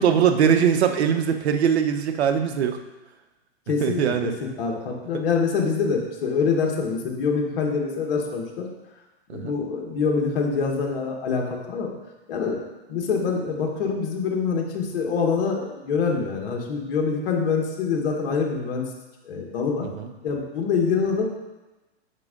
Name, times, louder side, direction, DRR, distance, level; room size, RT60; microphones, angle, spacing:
voice 1, 0.0-2.8 3.8-4.4 5.1-5.2 9.3-9.5 19.8-20.1, right 8 dB, 75° right, 7 dB, 0.8 m, -21 dB
voice 2, 3.7-8.7 9.3-11.9 12.3-12.6 12.9-18.9 19.2-19.9 20.2-21.3, left 5 dB, 55° left, 1 dB, 1.4 m, -25 dB
6.6 x 4.5 x 3.7 m, 1.1 s
hypercardioid pair, 140°, 33 cm